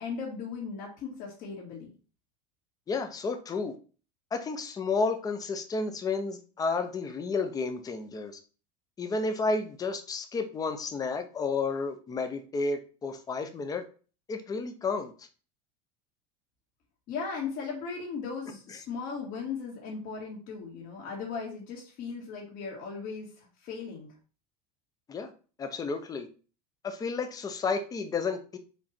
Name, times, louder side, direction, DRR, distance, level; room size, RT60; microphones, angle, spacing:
voice 1, 0.0-1.9 17.1-24.1, left 5 dB, 50° left, -4 dB, 2.1 m, -37 dB
voice 2, 2.9-3.7 4.3-8.3 9.0-13.8 14.3-15.1 25.1-25.3 25.6-26.3 26.8-28.6, left 4 dB, 20° left, 7 dB, 0.8 m, -31 dB
5.1 x 4.2 x 4.4 m, 0.37 s
supercardioid pair, 140°, 18 cm